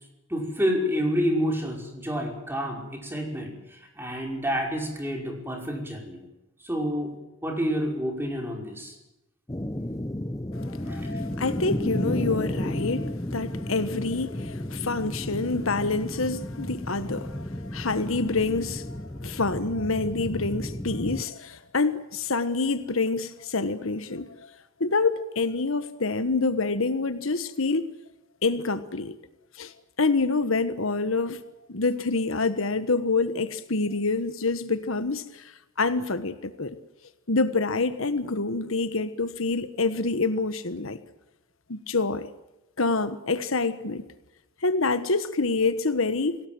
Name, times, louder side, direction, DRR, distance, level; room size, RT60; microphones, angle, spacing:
voice 1, 0.3-6.2 6.6-7.1 7.4-9.0 10.9-11.2, equal, 10° right, 5.5 m, -29 dB
sound 1, 9.5-21.2, left 1 dB, 15° left, 0.8 m, -33 dB
voice 2, 10.6-24.3 24.8-27.9 28.4-29.1 29.6-29.7 30.0-31.4 31.7-35.4 35.8-36.8 37.3-41.0 41.7-42.3 42.8-44.0 44.6-46.4, left 3 dB, 75° left, 1.4 m, -27 dB
26.5 x 18.0 x 7.8 m
head